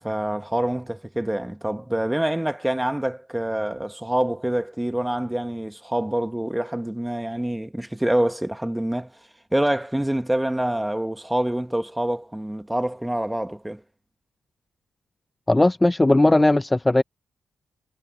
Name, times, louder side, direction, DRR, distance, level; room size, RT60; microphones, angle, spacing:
voice 1, 0.0-9.1 9.5-13.8, right 1 dB, 10° right, 1.6 m, -26 dB
voice 2, 15.5-17.0, left 2 dB, 15° left, 0.5 m, -17 dB
cardioid pair, 65°, 0 cm